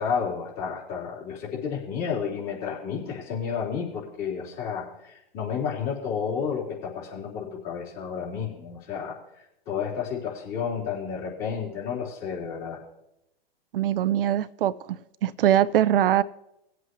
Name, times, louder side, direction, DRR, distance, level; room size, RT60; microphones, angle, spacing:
voice 1, 0.0-9.2 9.7-12.8, left 6 dB, 35° left, 4.2 m, -31 dB
voice 2, 13.7-16.2, right 11 dB, 65° right, 0.5 m, -22 dB
20.0 x 8.0 x 3.2 m
hypercardioid pair, 125°, 31 cm